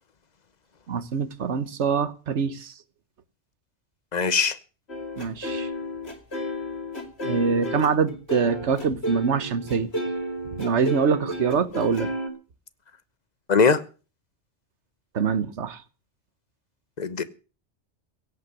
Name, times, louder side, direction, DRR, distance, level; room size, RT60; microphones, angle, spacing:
voice 1, 0.9-2.7 5.2-5.7 7.2-9.9 10.6-12.1 15.1-15.8, right 6 dB, 75° right, 1.4 m, -24 dB
voice 2, 4.1-4.6 13.5-13.8 17.0-17.2, left 5 dB, 40° left, 1.1 m, -20 dB
sound 1, 4.9-12.3, equal, 60° left, 2.9 m, -32 dB
17.0 x 5.8 x 9.8 m
omnidirectional pair, 1.2 m